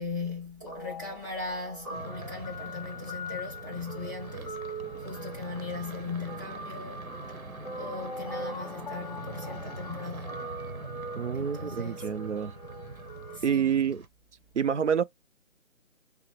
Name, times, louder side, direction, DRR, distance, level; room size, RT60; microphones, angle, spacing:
voice 1, 0.0-7.4 7.7-10.5 11.3-12.1 13.3-13.7, left 3 dB, 15° right, 0.8 m, -39 dB
Guitar, 0.7-13.4, equal, 30° left, 0.8 m, -41 dB
sound 1, 1.9-14.1, right 3 dB, 85° right, 0.9 m, -43 dB
voice 2, 11.2-12.5 13.4-14.0 14.5-15.0, right 7 dB, 60° right, 0.5 m, -27 dB
5.7 x 2.0 x 3.0 m
figure-of-eight pair, 150°, 41 cm